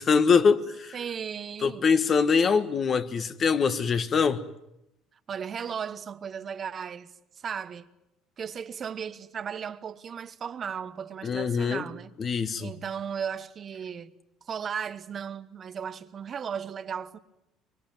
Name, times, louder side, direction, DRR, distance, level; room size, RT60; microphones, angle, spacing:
voice 1, 0.0-0.9 1.6-4.4 11.2-11.8 12.2-12.7, left 5 dB, 40° left, 1.5 m, -23 dB
voice 2, 0.9-2.0 5.3-7.9 8.4-12.1 12.6-14.1 14.4-17.2, right 7 dB, 40° right, 1.2 m, -36 dB
24.0 x 23.5 x 9.2 m
supercardioid pair, 95°, 0 cm